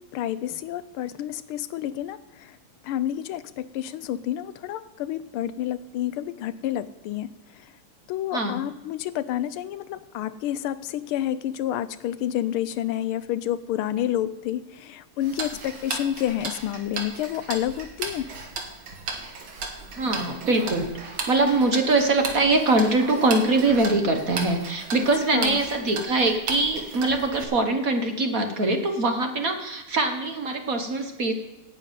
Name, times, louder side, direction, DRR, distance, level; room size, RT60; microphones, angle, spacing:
voice 1, 0.1-2.6 2.8-7.3 7.5-7.7 8.1-18.3 25.3-25.6, left 12 dB, 80° left, 14 dB, 1.4 m, -29 dB
voice 2, 8.3-8.7 20.0-31.3, right 2 dB, 45° right, 5 dB, 1.3 m, -23 dB
Tick-tock, 15.2-27.4, right 4 dB, 65° right, 2.3 m, -35 dB
9.9 x 7.4 x 9.2 m, 1.1 s
omnidirectional pair, 2.4 m